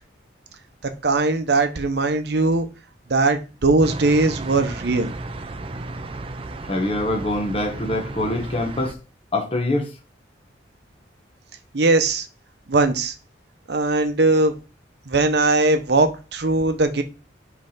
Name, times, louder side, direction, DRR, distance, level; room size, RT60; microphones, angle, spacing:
voice 1, 1.0-2.7 3.1-5.1 11.7-12.3 12.7-13.1 13.7-14.5 15.1-17.0, right 3 dB, 60° right, 0.8 m, -20 dB
sound 1, 3.8-8.9, right 2 dB, 30° right, 0.5 m, -34 dB
voice 2, 6.7-9.0 9.3-9.9, left 1 dB, 30° left, 1.0 m, -24 dB
5.3 x 3.4 x 5.6 m
head